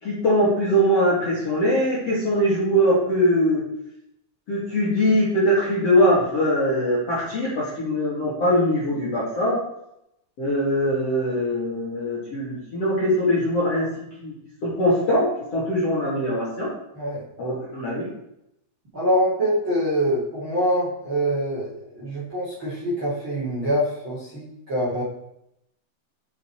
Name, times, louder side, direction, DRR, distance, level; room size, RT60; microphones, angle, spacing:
voice 1, 0.0-3.6 4.5-9.6 10.4-13.9 14.2-14.3 14.6-16.7 17.4-18.1, equal, 40° left, -8 dB, 2.8 m, -22 dB
voice 2, 18.9-25.0, equal, 30° right, -8 dB, 2.9 m, -24 dB
8.4 x 7.6 x 4.8 m, 0.80 s
omnidirectional pair, 5.7 m